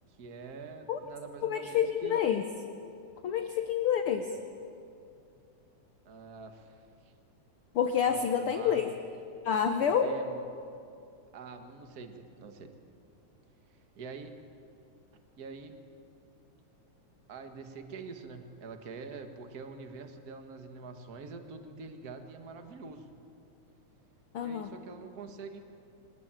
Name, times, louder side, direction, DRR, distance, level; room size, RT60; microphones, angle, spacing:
voice 1, 0.1-2.2 6.0-7.1 8.0-8.8 9.8-10.4 11.3-12.7 14.0-14.4 15.4-15.8 17.3-23.1 24.4-25.6, right 4 dB, 40° right, 6 dB, 1.6 m, -45 dB
voice 2, 1.4-2.4 3.2-4.4 7.7-8.9 9.4-10.1 24.3-24.7, left 8 dB, 65° left, 6 dB, 1.5 m, -28 dB
23.0 x 19.0 x 9.0 m, 2.5 s
omnidirectional pair, 3.4 m